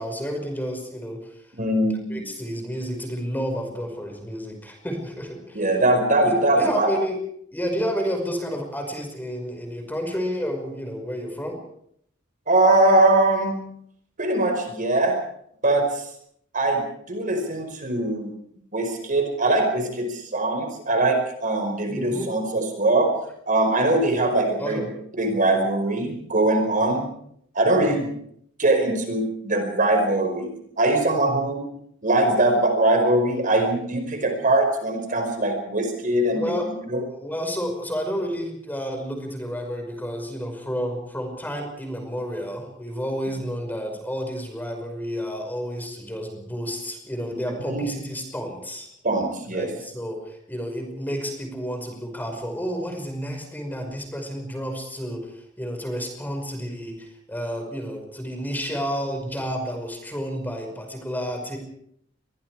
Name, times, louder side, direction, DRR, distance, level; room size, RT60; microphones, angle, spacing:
voice 1, 0.0-1.3 2.1-5.7 6.2-7.2 7.5-11.6 21.9-22.3 24.6-24.9 36.3-36.7 37.1-48.9 49.5-61.6, equal, 10° left, 4 dB, 5.4 m, -30 dB
voice 2, 1.5-2.0 5.5-6.9 12.5-13.6 14.2-15.2 15.6-16.0 16.5-18.3 18.7-23.1 23.5-24.8 25.2-27.0 27.5-28.1 28.6-30.5 30.8-31.6 32.0-36.5 36.9-37.0 47.7-47.9 49.0-49.7, right 2 dB, 45° right, 5 dB, 5.1 m, -21 dB
26.5 x 22.0 x 4.9 m, 0.69 s
head